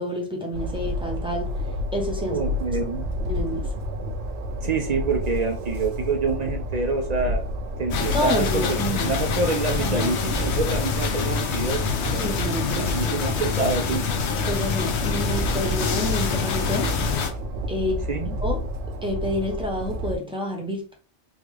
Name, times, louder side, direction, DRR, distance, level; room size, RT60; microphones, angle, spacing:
voice 1, 0.0-1.5 1.9-2.4 3.3-3.7 8.1-9.1 9.8-10.1 12.2-13.2 14.5-16.9 17.7-18.6 19.0-20.9, left 1 dB, 5° right, 0.7 m, -28 dB
Train, 0.5-20.2, equal, 70° right, 0.8 m, -30 dB
voice 2, 2.2-3.2 4.6-7.4 7.8-12.2 12.9-14.1 18.1-18.2, right 4 dB, 55° right, 0.5 m, -27 dB
sound 1, 7.9-17.3, left 6 dB, 80° left, 0.9 m, -27 dB
3.6 x 2.3 x 3.2 m
omnidirectional pair, 1.1 m